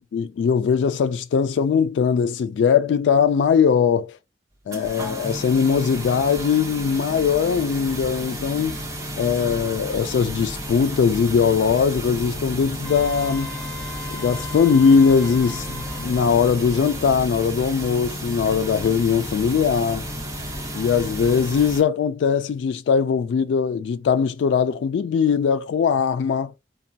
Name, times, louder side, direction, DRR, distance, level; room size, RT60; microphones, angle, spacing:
voice 1, 0.1-4.1 4.7-8.8 9.2-13.5 14.1-20.0 20.8-26.5, left 6 dB, 85° left, 0.3 m, -20 dB
sound 1, 4.7-21.8, equal, 20° right, 0.9 m, -32 dB
Wind instrument woodwind instrument, 12.8-17.1, left 4 dB, 5° left, 0.4 m, -40 dB
4.0 x 2.2 x 2.7 m
head